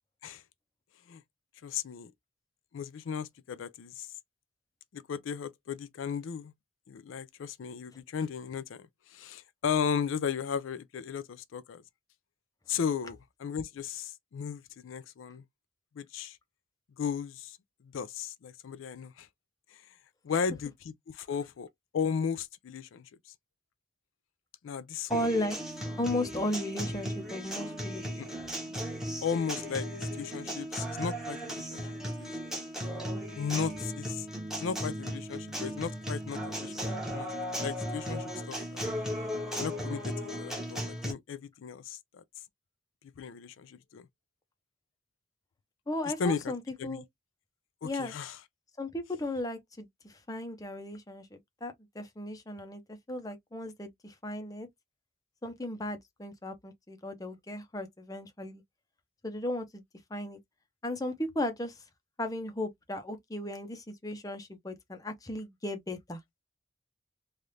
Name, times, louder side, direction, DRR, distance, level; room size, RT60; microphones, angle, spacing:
voice 1, 1.6-2.1 2.7-4.1 4.9-6.5 6.9-11.8 12.7-15.4 16.0-16.4 17.0-17.6 17.9-19.3 20.2-21.7 21.9-23.1 24.6-25.3 28.2-28.3 29.2-32.3 33.4-34.3 34.6-38.8 39.6-42.2 43.2-44.0 46.2-46.5 46.8-47.0 47.8-48.4, left 6 dB, 85° left, 0.4 m, -35 dB
voice 2, 25.1-25.6 26.0-28.0 45.9-47.0 47.8-48.1 48.8-54.7 55.4-58.6 59.2-59.8 60.1-60.4 60.8-61.8 62.2-66.2, left 1 dB, 20° left, 0.6 m, -35 dB
Acoustic guitar, 25.1-41.1, equal, 5° right, 0.9 m, -36 dB
3.3 x 2.4 x 2.7 m
head